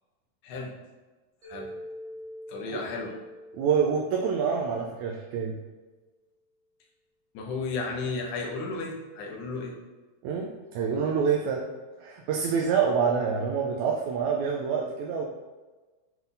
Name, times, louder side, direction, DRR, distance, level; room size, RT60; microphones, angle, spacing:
Mallet percussion, 1.4-5.6, equal, 50° right, 2.5 m, -45 dB
voice 1, 2.5-3.1 7.3-9.8 11.4-11.5, left 3 dB, 80° left, 0 dB, 2.5 m, -33 dB
voice 2, 3.5-5.5 10.2-10.5 10.7-11.7 12.0-15.3, right 6 dB, 80° right, 0 dB, 2.0 m, -26 dB
8.1 x 3.9 x 3.9 m, 1.3 s
omnidirectional pair, 3.4 m